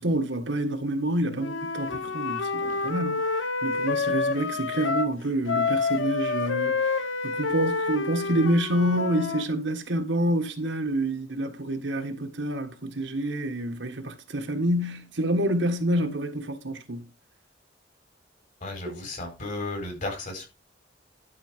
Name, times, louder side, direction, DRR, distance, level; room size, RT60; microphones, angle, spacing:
voice 1, 0.0-17.1 18.9-19.0, right 1 dB, 65° right, 1.5 m, -28 dB
Wind instrument woodwind instrument, 1.4-5.1 5.5-9.5, left 4 dB, 75° left, 1.0 m, -28 dB
voice 2, 18.6-20.5, left 2 dB, 40° left, 4.5 m, -34 dB
11.5 x 5.0 x 5.0 m
head